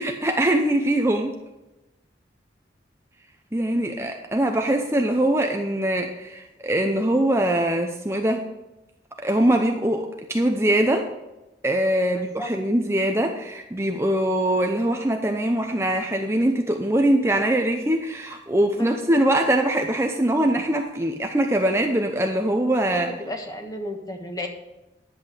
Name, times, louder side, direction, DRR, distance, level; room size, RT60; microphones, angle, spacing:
voice 1, 0.0-1.3 3.5-8.4 9.2-11.1 11.6-23.1, right 1 dB, 15° right, 3 dB, 0.7 m, -22 dB
voice 2, 12.1-12.5 18.8-19.0 22.9-24.5, left 1 dB, 20° left, 3 dB, 1.4 m, -33 dB
10.5 x 8.0 x 5.0 m, 0.99 s
head